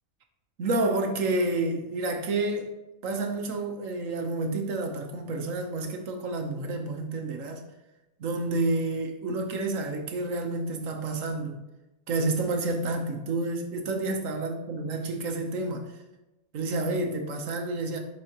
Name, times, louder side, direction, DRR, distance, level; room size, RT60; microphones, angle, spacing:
voice 1, 0.6-2.7 3.0-7.6 8.2-11.6 12.1-15.9 16.5-18.0, right 2 dB, 65° right, 4 dB, 1.3 m, -29 dB
10.5 x 4.3 x 2.9 m, 1.0 s
omnidirectional pair, 1.5 m